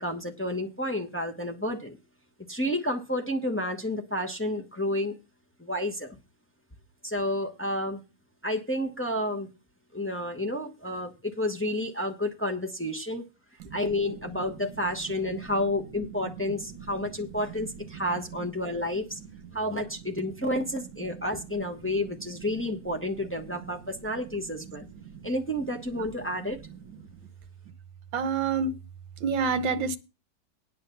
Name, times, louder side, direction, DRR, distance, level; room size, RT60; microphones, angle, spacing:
voice 1, 0.0-2.0 2.5-5.2 5.6-6.2 7.0-8.0 8.4-9.5 9.9-13.2 13.7-19.2 19.5-24.9 25.2-26.6, left 1 dB, 10° left, 0.7 m, -30 dB
voice 2, 28.1-28.8 29.2-30.0, right 5 dB, 70° right, 1.6 m, -27 dB
9.4 x 6.6 x 6.8 m
omnidirectional pair, 2.2 m